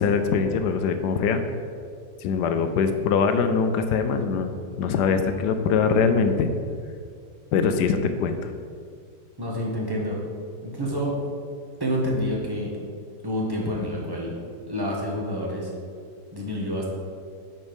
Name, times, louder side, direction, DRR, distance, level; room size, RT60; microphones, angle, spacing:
voice 1, 0.0-1.4 2.2-4.5 4.8-6.5 7.5-8.5, left 5 dB, 75° left, 8 dB, 1.1 m, -22 dB
voice 2, 9.4-10.2 10.6-11.2 11.8-12.7 13.2-14.4 14.7-15.7 16.3-16.9, equal, 15° right, -3 dB, 1.2 m, -28 dB
8.7 x 4.4 x 5.2 m, 2.2 s
omnidirectional pair, 1.9 m